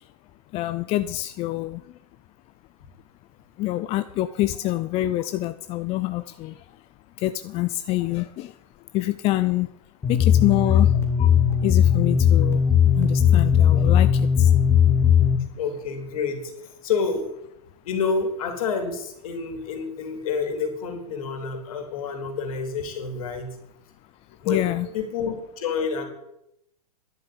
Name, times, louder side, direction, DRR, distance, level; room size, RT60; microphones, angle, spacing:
voice 1, 0.5-1.8 3.6-6.5 7.2-8.5 8.9-9.7 10.1-10.9 11.2-11.4 11.6-12.6 13.0-14.1 14.4-14.5 24.5-24.9, left 16 dB, 30° left, 12 dB, 0.5 m, -26 dB
sound 1, 10.0-15.4, left 8 dB, 15° left, 2.7 m, -18 dB
voice 2, 15.6-17.2 17.8-23.6 24.4-26.1, left 5 dB, 60° left, 5 dB, 3.7 m, -28 dB
11.0 x 8.0 x 8.7 m, 0.80 s
hypercardioid pair, 115°, 20 cm